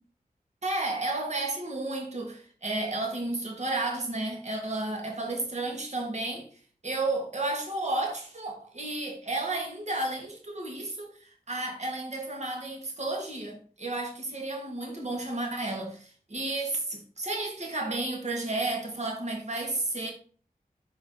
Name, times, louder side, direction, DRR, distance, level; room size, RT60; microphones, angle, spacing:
voice 1, 0.6-6.5 6.8-20.1, right 2 dB, 50° right, 1.9 m, -32 dB
5.7 x 4.9 x 3.7 m
wide cardioid pair, 60°, 15 cm